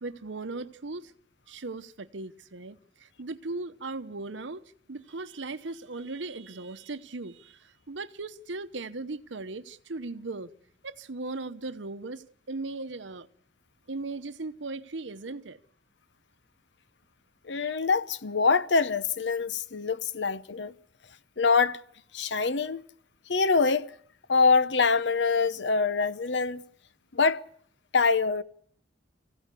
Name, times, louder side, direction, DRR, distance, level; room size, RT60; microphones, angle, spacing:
voice 1, 0.0-1.1 1.5-4.6 4.9-10.5 10.8-13.3 13.9-15.6, right 3 dB, 80° right, 0.9 m, -38 dB
voice 2, 17.5-20.7 21.4-21.8 22.1-22.8 23.3-23.9 24.3-26.6 27.1-27.4 27.9-28.4, left 4 dB, 70° left, 0.9 m, -24 dB
25.0 x 16.0 x 8.3 m
head